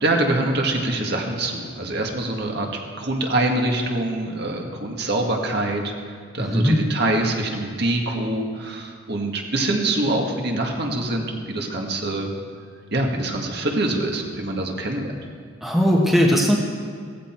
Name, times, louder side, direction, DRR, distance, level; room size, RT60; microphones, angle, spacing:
voice 1, 0.0-2.7 3.0-12.3 12.9-15.1, right 2 dB, 50° right, 1 dB, 1.7 m, -24 dB
voice 2, 6.4-6.8 15.6-16.6, equal, ahead, -2 dB, 1.3 m, -18 dB
16.5 x 14.5 x 4.5 m, 2.1 s
head